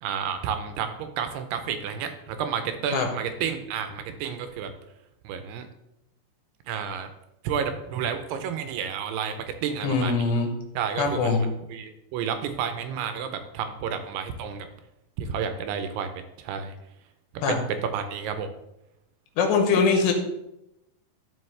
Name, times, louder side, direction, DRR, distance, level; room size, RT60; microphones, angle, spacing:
voice 1, 0.0-4.7 5.2-5.7 6.7-7.1 7.4-10.1 10.8-14.7 15.2-16.1 16.4-16.7 17.9-18.5, right 7 dB, 80° right, 8 dB, 2.6 m, -31 dB
voice 2, 9.8-10.5 11.0-11.5 17.4-17.6 19.4-20.1, left 4 dB, 85° left, 4 dB, 3.3 m, -22 dB
13.0 x 4.9 x 3.2 m, 0.87 s
omnidirectional pair, 4.9 m